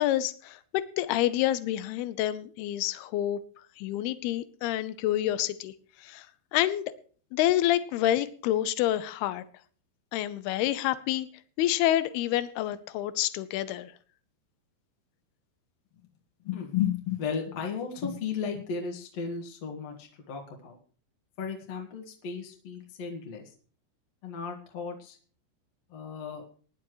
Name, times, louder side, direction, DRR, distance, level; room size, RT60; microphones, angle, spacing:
voice 1, 0.0-3.4 3.8-5.7 6.0-6.3 6.5-6.8 7.3-9.4 10.1-11.3 11.6-13.9, left 13 dB, 80° left, 14 dB, 2.4 m, -28 dB
voice 2, 16.4-20.8 21.4-23.5 24.2-25.2 25.9-26.4, left 7 dB, 50° left, 0 dB, 2.1 m, -34 dB
20.0 x 10.5 x 3.1 m, 0.42 s
omnidirectional pair, 5.2 m